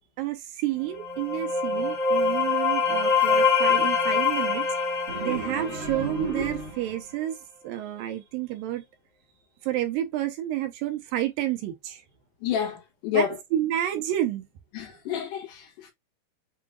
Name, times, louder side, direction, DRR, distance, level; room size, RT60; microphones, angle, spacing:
voice 1, 0.2-7.4 7.6-8.8 9.6-12.0 13.1-14.5 14.9-15.0, right 13 dB, 80° right, 2.3 m, -30 dB
sound 1, 0.9-6.6, left 5 dB, 40° left, 1.7 m, -25 dB
sound 2, 5.1-7.1, right 3 dB, 40° right, 1.0 m, -33 dB
voice 2, 12.4-13.4 14.7-15.9, left 8 dB, 65° left, 2.4 m, -29 dB
7.0 x 2.7 x 2.3 m
omnidirectional pair, 4.3 m